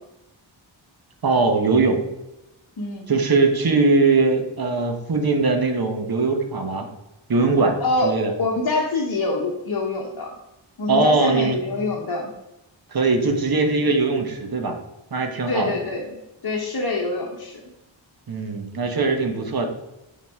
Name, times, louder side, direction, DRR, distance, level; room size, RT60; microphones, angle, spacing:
voice 1, 1.2-2.0 3.1-6.9 7.3-7.8 8.0-8.3 10.9-11.6 12.9-14.7 15.1-15.7 18.3-19.7, right 3 dB, 50° right, 5 dB, 1.1 m, -20 dB
voice 2, 2.8-3.1 7.8-10.3 10.8-12.3 15.5-17.6, left 2 dB, 55° left, -2 dB, 1.0 m, -25 dB
8.9 x 4.1 x 3.5 m, 0.93 s
wide cardioid pair, 80°, 47 cm